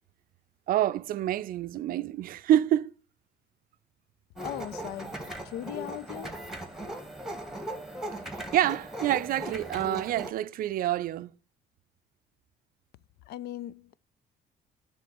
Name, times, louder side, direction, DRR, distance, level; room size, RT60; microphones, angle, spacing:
voice 1, 0.7-2.9 8.5-11.3, right 12 dB, 60° right, 0.4 m, -27 dB
voice 2, 4.4-6.4 13.3-13.9, left 13 dB, 75° left, 0.4 m, -39 dB
sound 1, 4.4-10.3, right 1 dB, ahead, 1.2 m, -38 dB
9.8 x 3.7 x 6.9 m
cardioid pair, 110°, 17 cm